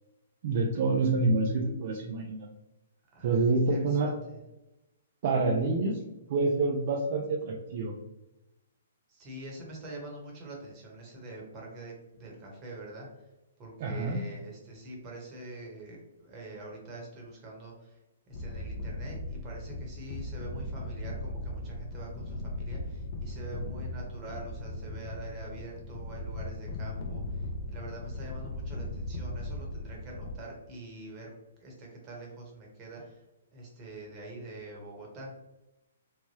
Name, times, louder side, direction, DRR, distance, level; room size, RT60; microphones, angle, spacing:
voice 1, 0.4-2.5 3.2-4.1 5.2-6.0 6.3-7.9 13.8-14.2, right 3 dB, 50° right, 1 dB, 0.4 m, -27 dB
voice 2, 3.1-4.4 9.1-13.3 13.6-18.0 18.3-31.3 31.6-33.2 33.5-35.3, right 2 dB, 30° right, -2 dB, 1.1 m, -45 dB
sound 1, 18.3-30.4, left 1 dB, 45° left, 0.5 m, -38 dB
3.1 x 2.1 x 3.0 m, 0.98 s
hypercardioid pair, 135°, 0 cm